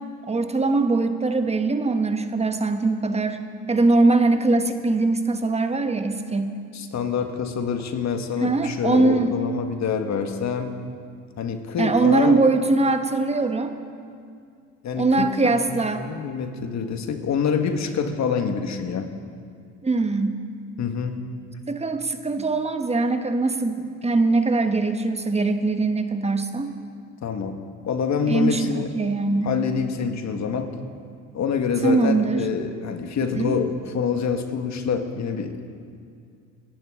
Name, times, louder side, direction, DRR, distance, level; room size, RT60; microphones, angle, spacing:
voice 1, 0.3-3.4 3.7-6.6 8.4-9.4 11.8-13.7 14.9-16.0 19.8-20.4 21.7-26.7 28.3-29.5 31.8-32.4 33.2-33.6, right 3 dB, 15° right, 7 dB, 1.2 m, -22 dB
voice 2, 6.7-10.7 11.4-12.4 14.8-19.1 20.8-21.2 27.2-28.9 29.4-30.7 31.3-35.7, left 6 dB, 45° left, 6 dB, 1.8 m, -26 dB
26.0 x 11.0 x 3.8 m, 2.3 s
hypercardioid pair, 75°, 39 cm